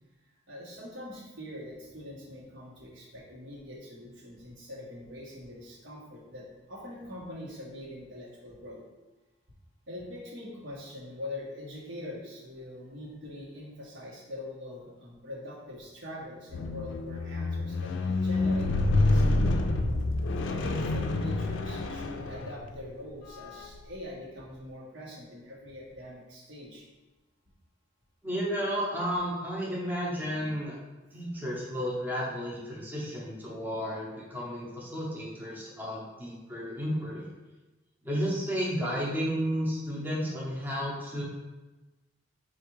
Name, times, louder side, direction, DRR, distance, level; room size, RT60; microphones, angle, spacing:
voice 1, 0.5-8.8 9.9-19.6 20.5-26.8, left 1 dB, 75° right, -5 dB, 1.2 m, -43 dB
Squeak, 16.5-22.9 23.6-23.8, left 2 dB, 70° left, 0.4 m, -28 dB
voice 2, 28.2-30.7 31.1-37.3 38.0-41.2, equal, 10° right, -5 dB, 0.7 m, -32 dB
3.5 x 2.5 x 4.6 m, 1.1 s
head